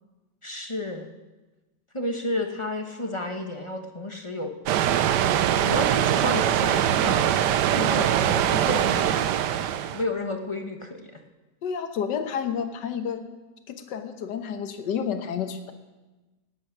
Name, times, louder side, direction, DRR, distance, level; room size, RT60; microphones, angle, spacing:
voice 1, 0.4-1.1 1.9-4.5 5.6-7.3 7.9-9.3 9.9-11.2, left 1 dB, 20° left, 4 dB, 0.9 m, -31 dB
sound 1, 4.7-10.0, right 10 dB, 80° right, 1.3 m, -22 dB
voice 2, 11.6-13.3 13.7-15.7, left 7 dB, 85° left, 7 dB, 1.7 m, -30 dB
18.5 x 8.6 x 6.0 m, 1.2 s
omnidirectional pair, 1.8 m